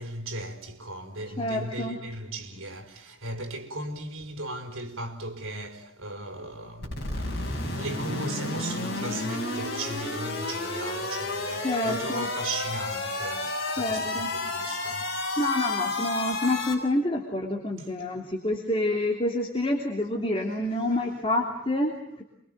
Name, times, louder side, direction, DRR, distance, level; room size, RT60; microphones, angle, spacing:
voice 1, 0.0-15.2 17.8-18.1, right 2 dB, 70° right, 4.7 m, -37 dB
voice 2, 1.4-2.0 11.6-12.3 13.8-14.3 15.4-22.2, left 1 dB, 25° left, 3.2 m, -28 dB
sound 1, 6.8-16.7, left 2 dB, 50° left, 7.6 m, -31 dB
28.0 x 24.0 x 7.7 m
head